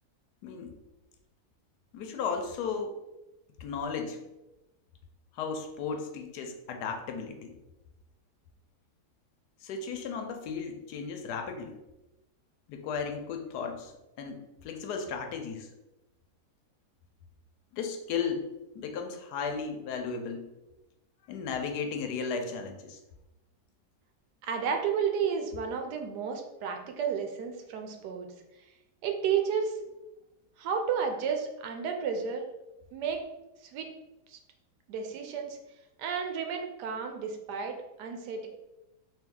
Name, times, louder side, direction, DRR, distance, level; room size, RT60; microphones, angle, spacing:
voice 1, 0.4-0.8 1.9-3.0 3.6-4.2 5.3-7.5 9.6-11.8 12.7-13.9 14.2-15.7 17.7-20.5 21.3-23.0, left 5 dB, 80° left, 5 dB, 1.2 m, -35 dB
voice 2, 24.4-28.3 29.0-29.8 30.6-32.4 32.9-33.3 33.6-33.9 34.3-34.4 34.9-35.6 36.0-38.5, right 6 dB, 85° right, 4 dB, 1.2 m, -32 dB
3.6 x 2.8 x 3.7 m, 0.97 s
omnidirectional pair, 1.7 m